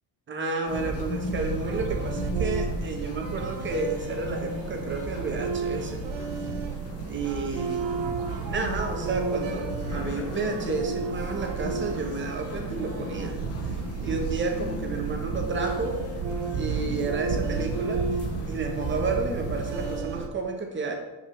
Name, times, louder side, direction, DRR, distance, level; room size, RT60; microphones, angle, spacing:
voice 1, 0.3-6.0 7.1-7.9 8.4-13.4 14.0-16.0 16.5-18.1 18.4-20.9, right 3 dB, 30° right, 3 dB, 1.2 m, -31 dB
sound 1, 0.7-20.0, left 5 dB, 35° left, 0.6 m, -39 dB
sound 2, 0.7-20.3, right 5 dB, 85° right, 1.2 m, -32 dB
5.8 x 5.1 x 6.7 m, 1.1 s
cardioid pair, 165°, 41 cm